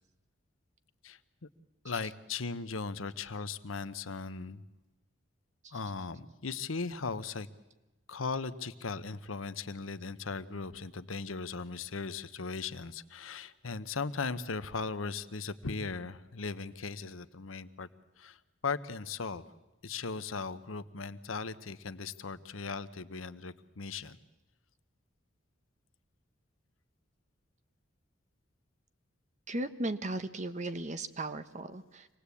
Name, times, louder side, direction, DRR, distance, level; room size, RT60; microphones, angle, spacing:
voice 1, 1.0-1.5 1.8-4.6 5.7-7.5 8.1-17.9 18.2-19.4 19.8-24.2, left 4 dB, 85° left, 13 dB, 1.0 m, -38 dB
voice 2, 29.5-32.1, right 2 dB, 40° right, 10 dB, 1.1 m, -36 dB
26.0 x 18.5 x 8.4 m, 1.1 s
head